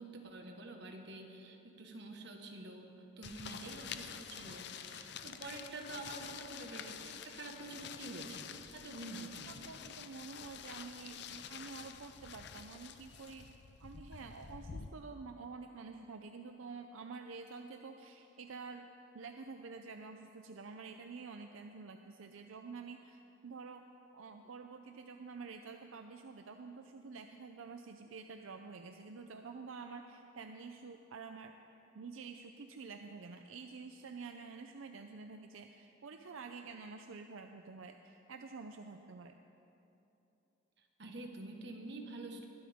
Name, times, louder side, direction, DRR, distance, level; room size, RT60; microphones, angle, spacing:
voice 1, 0.0-2.9 3.2-9.7 41.0-42.5, right 2 dB, 60° right, 2 dB, 1.4 m, -47 dB
sound 1, 3.2-14.9, left 7 dB, 55° left, 0.6 m, -48 dB
voice 2, 9.5-13.5 13.8-18.9 19.1-23.8 24.1-31.6 31.9-39.4, right 4 dB, 85° right, 5 dB, 0.5 m, -49 dB
21.0 x 12.5 x 3.6 m, 2.9 s
head